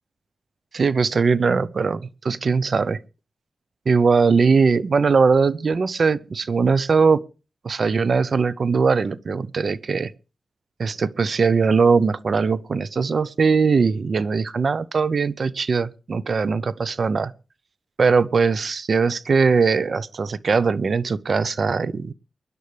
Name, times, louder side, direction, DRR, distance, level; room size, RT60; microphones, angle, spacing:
voice 1, 0.7-3.0 3.9-7.2 7.6-10.1 10.8-17.3 18.0-22.1, right 5 dB, 60° right, 0.7 m, -20 dB
23.5 x 11.0 x 3.4 m
cardioid pair, 75°, 0 cm